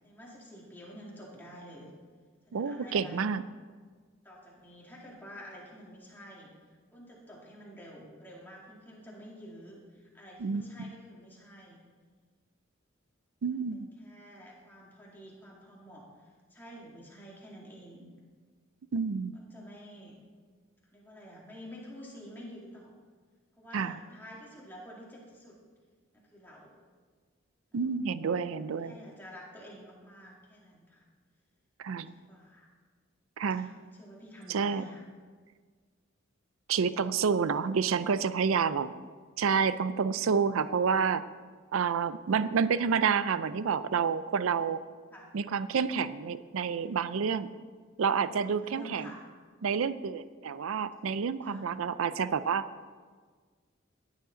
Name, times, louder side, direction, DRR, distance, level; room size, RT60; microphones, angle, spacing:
voice 1, 0.0-1.9 2.5-3.4 4.2-6.5 6.9-11.8 13.5-18.1 19.3-20.2 20.9-23.0 23.6-25.6 26.3-26.7 27.8-28.1 28.6-31.0 31.9-32.7 33.6-35.0 45.1-45.3 48.4-49.2 51.4-51.7, equal, 10° left, -4 dB, 2.1 m, -49 dB
voice 2, 2.5-3.4 10.4-10.9 13.4-13.8 18.9-19.3 23.7-24.0 27.7-29.0 31.8-32.1 33.4-33.7 34.5-34.8 36.7-38.9 39.4-41.2 41.7-44.8 45.3-47.5 48.0-49.1 49.6-52.6, right 6 dB, 80° right, 15 dB, 0.4 m, -29 dB
14.0 x 9.4 x 3.9 m, 1.6 s
head